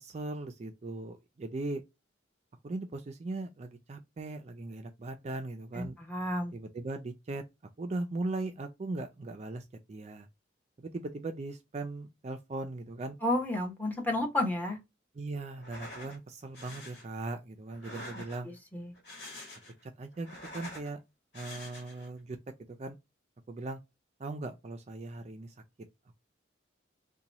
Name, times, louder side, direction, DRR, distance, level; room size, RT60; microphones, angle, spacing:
voice 1, 0.0-1.8 2.6-6.0 6.5-7.4 7.8-10.3 10.8-13.2 15.1-18.5 19.8-20.3 20.5-21.0 21.3-22.4 22.7-23.0 23.5-23.8 24.2-25.5, right 2 dB, 35° right, 0.4 m, -39 dB
voice 2, 5.7-6.5 13.2-14.8 18.7-18.9, left 1 dB, 10° left, 0.9 m, -31 dB
sound 1, 15.5-16.2 16.5-17.1 17.7-18.6 18.9-19.8 20.1-20.9 21.3-22.1, left 1 dB, 60° left, 1.4 m, -46 dB
2.9 x 2.2 x 3.9 m
head